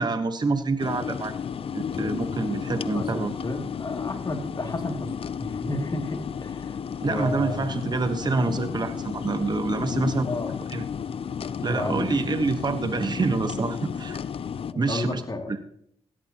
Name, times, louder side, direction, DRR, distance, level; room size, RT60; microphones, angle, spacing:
voice 1, 0.0-1.3 1.7-3.3 7.0-10.3 10.7-10.8 11.6-14.2 14.8-15.2 15.5-15.6, right 3 dB, 40° right, 9 dB, 1.2 m, -27 dB
sound 1, 0.8-14.7, left 7 dB, 60° left, 0.5 m, -32 dB
voice 2, 2.9-5.1 5.4-7.7 10.3-10.5 11.5-12.2 14.7-15.5, left 2 dB, 40° left, 2 dB, 2.6 m, -32 dB
16.5 x 12.5 x 2.9 m, 0.66 s
supercardioid pair, 50°, 11 cm